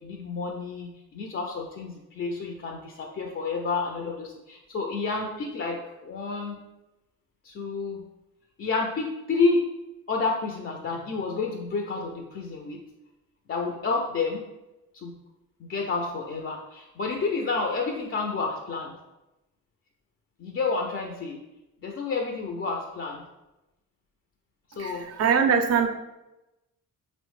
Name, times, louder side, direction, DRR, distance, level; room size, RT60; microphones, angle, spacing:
voice 1, 0.0-6.6 7.4-8.0 8.6-9.7 10.1-12.8 13.5-14.4 14.9-15.1 15.6-18.9 20.4-21.4 21.8-23.2 24.7-25.1, left 4 dB, 35° left, 1 dB, 0.4 m, -30 dB
voice 2, 24.7-25.9, right 6 dB, 40° right, 6 dB, 0.4 m, -23 dB
3.0 x 2.1 x 3.0 m, 0.97 s
supercardioid pair, 60°, 39 cm